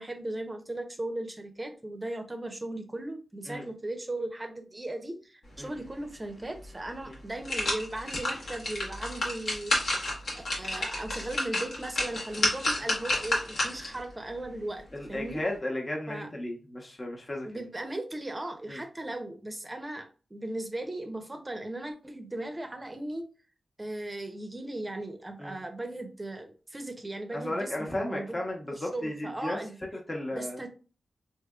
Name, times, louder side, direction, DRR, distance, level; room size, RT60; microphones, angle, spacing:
voice 1, 0.0-10.1 10.3-14.8 15.1-15.4 16.1-16.3 17.4-23.2 23.8-29.8 30.3-30.7, right 1 dB, 25° right, 6 dB, 0.6 m, -37 dB
sound 1, 6.6-6.7 7.1-14.0 14.4-14.5, left 1 dB, 75° left, 1.2 m, -30 dB
voice 2, 14.9-17.6 18.7-18.8 25.4-25.6 27.3-29.6 30.1-30.6, left 1 dB, 30° left, 0 dB, 0.9 m, -34 dB
3.4 x 2.8 x 2.3 m, 0.37 s
cardioid pair, 65°, 0 cm